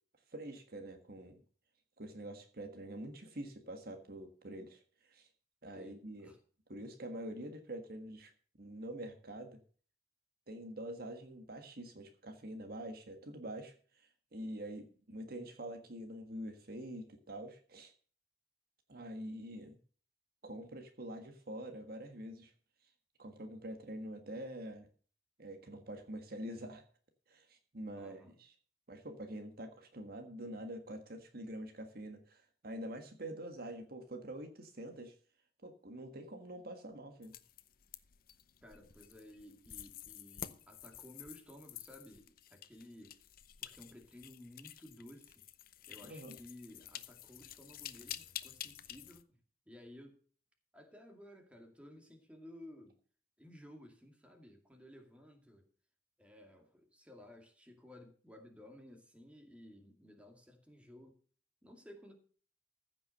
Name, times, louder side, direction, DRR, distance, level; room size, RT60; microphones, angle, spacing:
voice 1, 0.3-1.4 2.0-5.3 5.6-6.3 6.7-8.3 8.6-9.6 10.5-17.9 18.9-19.8 20.4-22.5 23.2-24.9 25.4-26.9 27.3-28.5 28.9-35.1 35.6-37.3 46.0-46.4, right 1 dB, 60° right, 6 dB, 1.5 m, -46 dB
voice 2, 5.7-6.4 28.0-28.4 38.6-43.2 43.6-45.4 45.9-49.4 49.7-50.2 50.7-53.0 53.4-55.6 56.2-61.2 61.6-62.1, left 1 dB, 5° right, 3 dB, 2.3 m, -56 dB
sound 1, 37.2-49.2, left 11 dB, 55° left, 0.7 m, -50 dB
15.0 x 6.1 x 6.6 m, 0.43 s
head